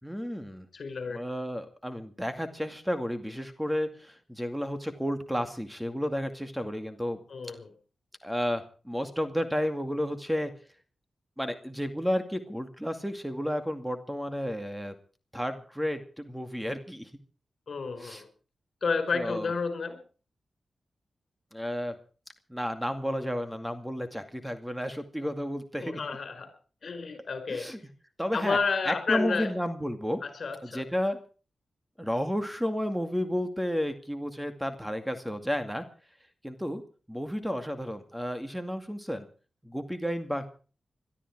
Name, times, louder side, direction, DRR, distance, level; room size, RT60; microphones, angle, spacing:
voice 1, 0.0-0.7 1.1-7.2 8.2-10.5 11.4-14.9 15.3-17.1 18.0-18.2 19.1-19.5 21.5-21.9 22.5-26.0 27.5-27.8 28.2-28.6 28.9-30.2 30.7-31.2 32.0-35.8 36.4-36.8 37.1-39.3 39.6-40.5, equal, 5° right, 8 dB, 2.3 m, -32 dB
voice 2, 0.7-1.2 7.3-7.7 17.7-18.3 18.8-20.0 25.8-26.5 26.8-27.7 28.3-29.5 30.2-30.8, left 4 dB, 65° left, 8 dB, 5.0 m, -31 dB
22.0 x 13.0 x 4.8 m, 0.38 s
cardioid pair, 75°, 0 cm